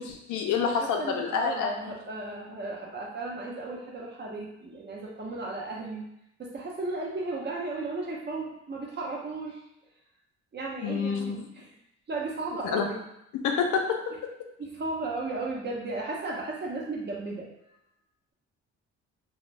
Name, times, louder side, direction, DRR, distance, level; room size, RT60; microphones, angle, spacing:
voice 1, 0.0-1.9 10.8-11.5 12.7-12.9 13.3-14.0, left 6 dB, 80° left, 2 dB, 0.5 m, -28 dB
voice 2, 0.6-6.0 6.4-9.6 10.5-11.6 12.1-13.1 14.6-17.5, right 2 dB, 35° right, -2 dB, 0.7 m, -35 dB
2.5 x 2.2 x 3.1 m, 0.83 s
cardioid pair, 90°, 30 cm